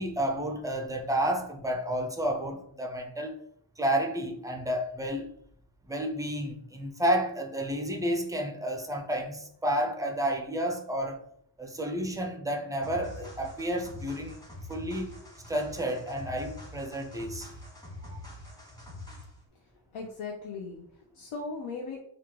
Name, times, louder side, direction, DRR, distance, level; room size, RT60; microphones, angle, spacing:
voice 1, 0.0-3.4 3.8-5.3 5.9-11.2 11.6-14.4 14.7-15.2 15.5-17.5 18.1-18.2, right 1 dB, 10° right, 0.3 m, -31 dB
sound 1, 12.8-19.4, left 1 dB, 10° left, 1.0 m, -45 dB
voice 2, 19.9-22.0, left 4 dB, 85° left, 0.6 m, -38 dB
2.9 x 2.3 x 3.6 m
wide cardioid pair, 125°, 48 cm